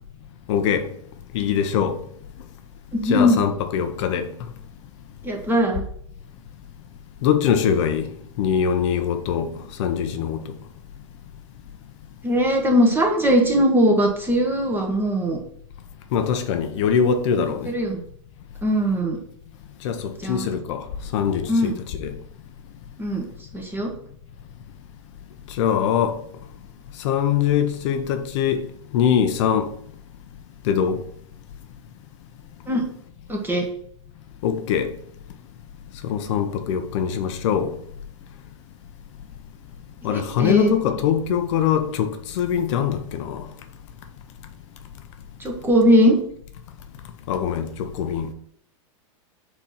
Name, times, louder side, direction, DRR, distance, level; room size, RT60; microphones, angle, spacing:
voice 1, 0.5-0.9 1.3-2.0 3.0-4.3 7.2-8.1 8.4-9.5 9.8-10.4 16.1-17.7 19.8-20.8 21.1-22.2 25.6-26.2 27.0-28.7 28.9-29.7 30.6-31.0 34.4-34.9 36.0-37.8 40.0-43.5 47.3-48.3, left 8 dB, 65° left, 0.7 m, -22 dB
voice 2, 2.9-3.4 5.2-5.8 12.2-15.4 17.6-18.0 18.6-19.2 20.2-20.5 21.5-21.7 23.0-23.2 23.5-23.9 32.7-32.8 33.3-33.7 40.1-40.7 45.4-46.2, equal, 10° right, 1.5 m, -20 dB
4.4 x 4.4 x 5.6 m
hypercardioid pair, 115°, 17 cm